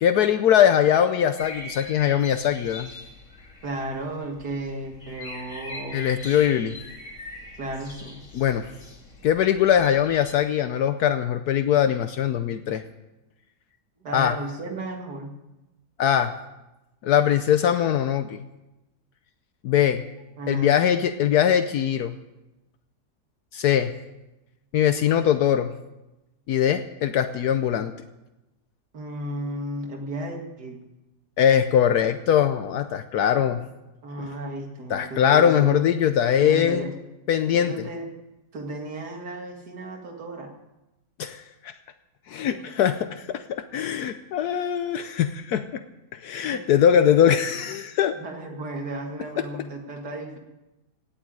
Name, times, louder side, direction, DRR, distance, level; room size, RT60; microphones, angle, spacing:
voice 1, 0.0-2.9 5.9-6.7 8.3-8.7 9.2-12.8 14.1-14.3 16.0-16.3 17.0-18.4 19.6-20.0 20.5-22.1 23.5-23.9 24.7-25.7 26.5-27.9 31.4-33.6 34.9-36.9 37.3-37.7 41.2-41.7 42.3-43.4 43.7-45.8 46.2-48.2, left 9 dB, 75° left, 9 dB, 1.2 m, -21 dB
sound 1, 1.4-10.3, left 2 dB, 45° left, 2.7 m, -42 dB
voice 2, 3.6-6.2 7.5-8.2 14.0-15.3 20.4-20.8 28.9-30.8 33.4-33.6 34.0-35.8 36.4-36.9 37.5-38.1 38.5-40.5 42.5-42.6 46.5-46.6 48.1-50.4, right 1 dB, 75° right, 2 dB, 2.6 m, -34 dB
17.5 x 7.3 x 9.2 m, 0.99 s
omnidirectional pair, 1.7 m